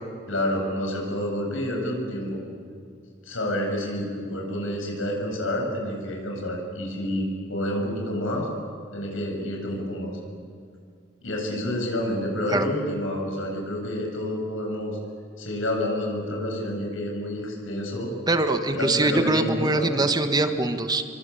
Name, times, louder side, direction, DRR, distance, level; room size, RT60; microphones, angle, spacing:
voice 1, 0.3-2.4 3.2-8.5 8.9-10.2 11.2-15.0 15.4-18.1 18.7-20.0, left 1 dB, 90° left, 1 dB, 7.7 m, -29 dB
voice 2, 18.3-21.0, right 2 dB, 20° right, 7 dB, 1.4 m, -23 dB
28.5 x 24.5 x 8.6 m, 2.2 s
head